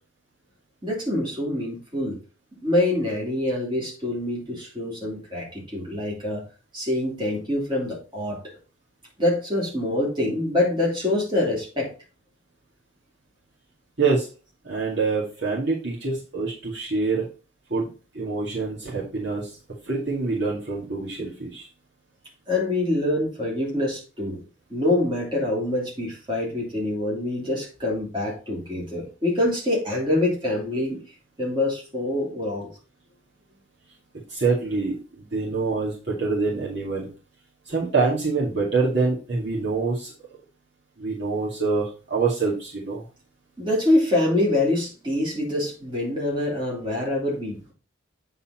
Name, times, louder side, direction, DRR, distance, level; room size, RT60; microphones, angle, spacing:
voice 1, 0.8-2.2 2.6-6.4 6.7-8.4 9.2-11.9 22.5-24.4 24.7-31.0 31.4-32.7 43.6-47.7, left 1 dB, 20° right, -4 dB, 3.1 m, -25 dB
voice 2, 14.6-17.3 17.7-17.9 18.1-19.5 19.8-21.7 34.3-37.1 37.7-40.1 41.0-43.0, right 4 dB, 55° right, -5 dB, 2.2 m, -25 dB
8.4 x 4.1 x 4.4 m, 0.35 s
head